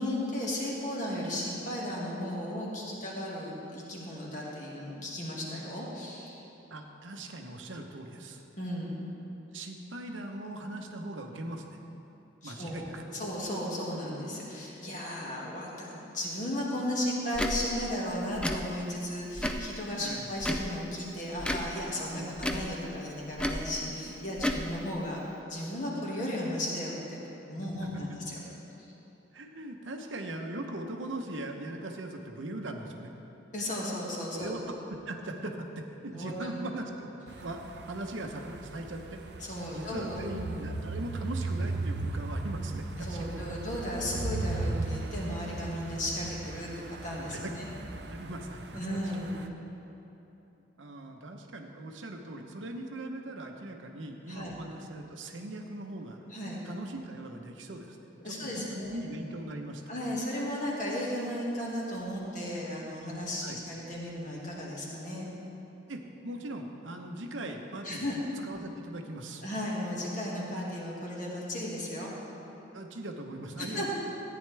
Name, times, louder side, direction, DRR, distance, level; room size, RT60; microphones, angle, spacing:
voice 1, 0.0-6.4 8.6-9.0 12.4-25.2 25.5-27.2 27.5-28.4 33.5-34.5 36.1-36.6 39.4-40.4 43.0-46.7 47.0-47.7 48.7-49.4 54.3-54.6 56.3-56.6 58.2-59.0 59.9-65.3 67.8-68.2 69.4-72.1 73.6-73.9, left 1 dB, 40° left, -4 dB, 1.9 m, -35 dB
voice 2, 6.7-8.4 9.5-11.8 12.4-13.1 20.0-20.3 22.1-22.3 27.8-28.2 29.3-33.1 34.3-37.1 37.4-39.2 39.7-43.4 47.3-48.8 50.8-56.2 56.6-58.0 58.2-59.8 63.4-63.6 65.9-68.0 68.4-69.4 72.7-73.9, right 1 dB, 90° right, 3 dB, 0.9 m, -40 dB
Tick / Tick-tock, 17.3-17.6 18.3-18.6 19.3-19.7 20.4-20.7 21.4-21.7 22.4-22.7 23.4-23.6 24.4-24.6, left 1 dB, 5° left, 0.4 m, -31 dB
sound 1, 37.3-49.5, right 2 dB, 60° right, 0.5 m, -37 dB
14.0 x 9.6 x 3.4 m, 3.0 s
head